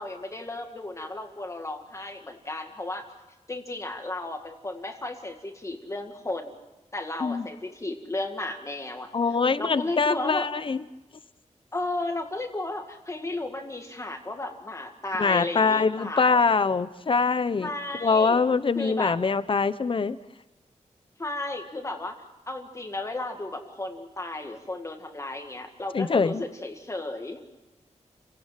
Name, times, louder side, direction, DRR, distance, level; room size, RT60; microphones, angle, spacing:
voice 1, 0.0-3.1 3.5-6.6 6.9-9.1 9.6-10.5 11.7-16.4 17.6-18.4 18.8-19.1 21.2-22.2 22.5-27.4, left 2 dB, 25° left, 4 dB, 2.0 m, -34 dB
voice 2, 9.1-10.8 15.2-17.7 18.0-20.2 25.9-26.4, left 4 dB, 45° left, 14 dB, 0.9 m, -23 dB
29.5 x 18.0 x 7.5 m, 1.0 s
wide cardioid pair, 145°, 13 cm